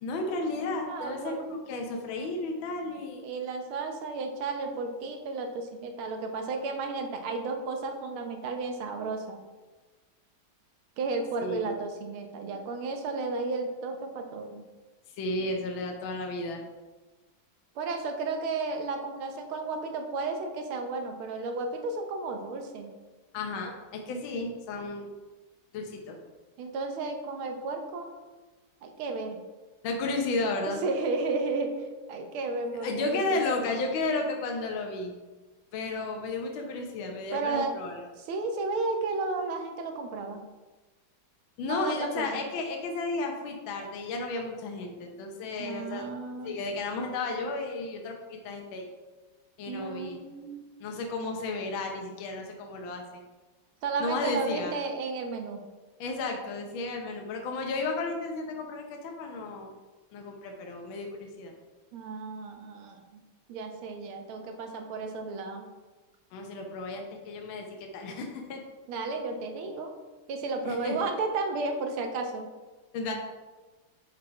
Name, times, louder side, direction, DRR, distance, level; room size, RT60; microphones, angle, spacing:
voice 1, 0.0-3.3 11.4-11.8 15.2-16.6 23.3-25.2 25.7-26.2 29.8-30.8 32.8-35.1 35.7-38.0 41.6-46.1 46.4-48.9 49.6-50.2 50.8-53.2 54.0-54.7 56.0-59.7 60.1-61.5 66.3-68.6 70.6-71.1 72.9-73.1, left 2 dB, 75° left, 2 dB, 1.6 m, -33 dB
voice 2, 0.9-1.4 3.2-9.4 11.0-14.6 17.7-22.9 26.6-28.2 28.8-29.4 30.7-31.8 32.1-33.4 37.3-37.7 38.2-40.4 41.6-42.4 45.6-46.6 49.7-50.6 53.8-55.6 61.9-63.2 63.5-65.7 68.9-69.9 70.3-72.5, right 3 dB, 85° right, 4 dB, 1.7 m, -33 dB
5.8 x 4.9 x 4.7 m, 1.2 s
omnidirectional pair, 2.3 m